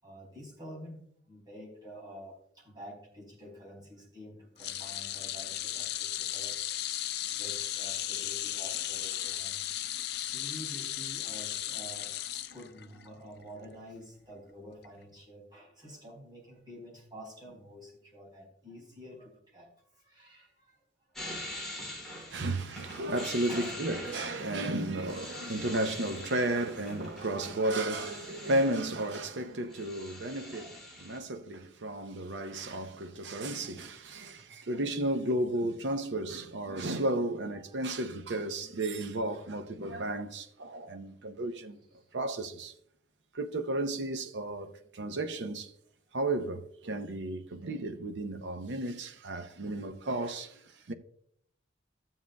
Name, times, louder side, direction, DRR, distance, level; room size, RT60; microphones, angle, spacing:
voice 1, 0.0-6.7 7.2-20.8 21.1-22.6 23.5-24.4 27.1-27.3 30.2-30.8 31.6-31.7 32.1-32.4 33.5-33.7 34.3-34.6 37.5-37.8 42.0-42.1, equal, 25° right, 4.3 m, -49 dB
sound 1, 4.6-13.1 13.4-13.6 14.8-14.9, left 13 dB, 60° left, 0.4 m, -35 dB
sound 2, 21.2-29.1 29.4-31.2, left 1 dB, ahead, 2.6 m, -44 dB
voice 2, 22.3-30.7 31.0-41.8 42.1-42.7 43.3-45.7 46.1-50.9, right 1 dB, 70° right, 0.7 m, -33 dB
15.0 x 7.5 x 2.3 m
head